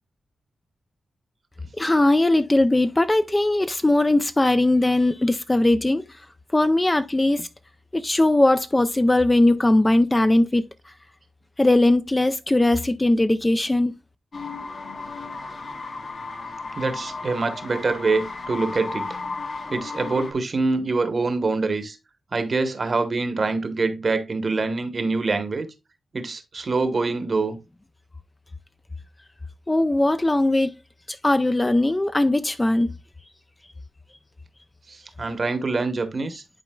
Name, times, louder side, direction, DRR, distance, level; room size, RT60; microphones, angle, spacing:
voice 1, 1.8-6.0 6.5-7.5 7.9-10.7 11.6-13.9 29.7-30.7 31.1-32.9, left 1 dB, 15° left, 0.4 m, -19 dB
sound 1, 14.3-20.3, left 3 dB, 50° left, 1.1 m, -34 dB
voice 2, 16.8-19.2 19.7-22.0 22.3-25.7 26.1-27.6 34.9-36.4, right 3 dB, 45° right, 1.0 m, -25 dB
10.0 x 4.2 x 2.2 m
cardioid pair, 90°, 0 cm